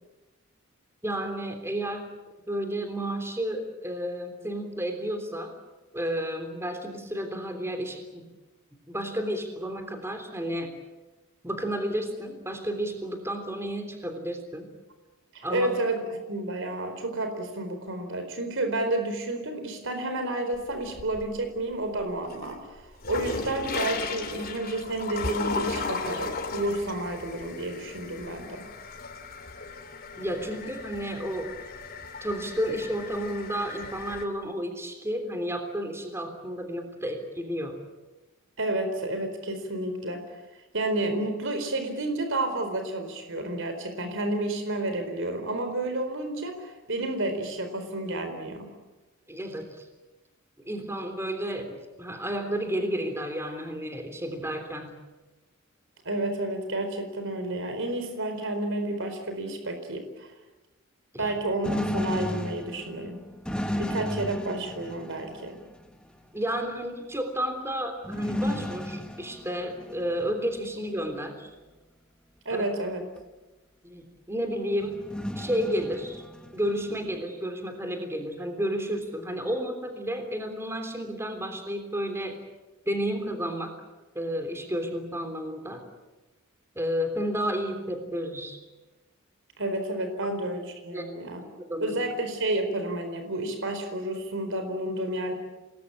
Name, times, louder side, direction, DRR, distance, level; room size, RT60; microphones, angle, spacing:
voice 1, 1.0-2.1 2.5-5.5 5.9-8.3 8.9-10.7 11.4-14.7 15.4-15.7 30.2-31.5 32.2-37.8 49.3-49.6 50.6-54.9 61.1-61.3 66.3-71.5 72.5-72.6 73.8-75.0 75.3-76.2 76.5-82.4 82.8-83.7 84.1-85.8 86.7-88.6 90.9-91.0 91.3-91.9, equal, 10° right, 5 dB, 3.4 m, -31 dB
voice 2, 15.3-28.6 38.6-40.2 40.7-48.7 56.0-60.3 61.2-63.2 63.8-65.6 72.4-73.0 89.6-91.4 91.8-95.3, right 1 dB, 60° right, 6 dB, 4.3 m, -30 dB
sound 1, 20.5-21.5 21.9-34.2, left 4 dB, 45° left, 3.2 m, -36 dB
sound 2, 61.2-66.0 68.0-70.2 70.6-70.7 73.2-73.3 74.8-77.1, left 1 dB, 5° left, 1.9 m, -34 dB
27.5 x 20.5 x 8.7 m, 1.1 s
head